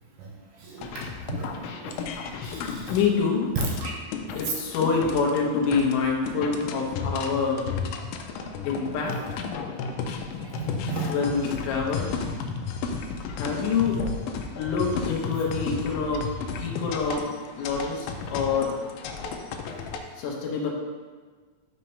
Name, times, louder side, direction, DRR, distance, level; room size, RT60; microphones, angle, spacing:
voice 1, 0.7-1.5 1.8-1.9 2.4-2.8 3.8-3.9 10.5-11.2, right 4 dB, 75° right, -2 dB, 2.4 m, -35 dB
sound 1, 0.8-20.0, left 5 dB, 90° left, 2.4 m, -33 dB
voice 2, 2.9-3.5 4.3-7.7 8.6-9.4 11.1-12.1 13.3-14.0 14.6-16.3 16.6-17.3 17.6-18.8 20.2-20.7, left 5 dB, 75° left, -1 dB, 2.2 m, -26 dB
5.6 x 4.5 x 5.3 m, 1.4 s
omnidirectional pair, 4.0 m